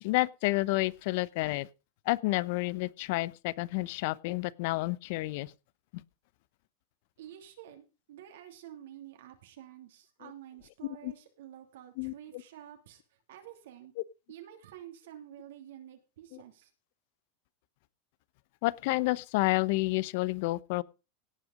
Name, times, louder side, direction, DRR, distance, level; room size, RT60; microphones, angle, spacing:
voice 1, 0.0-1.7 2.1-5.5 11.0-11.1 12.0-12.1 18.6-20.8, left 21 dB, 65° left, 21 dB, 0.7 m, -30 dB
voice 2, 7.2-13.9 14.3-16.7, right 11 dB, 80° right, 5 dB, 2.7 m, -50 dB
17.5 x 6.3 x 5.1 m, 0.30 s
supercardioid pair, 120°, 0 cm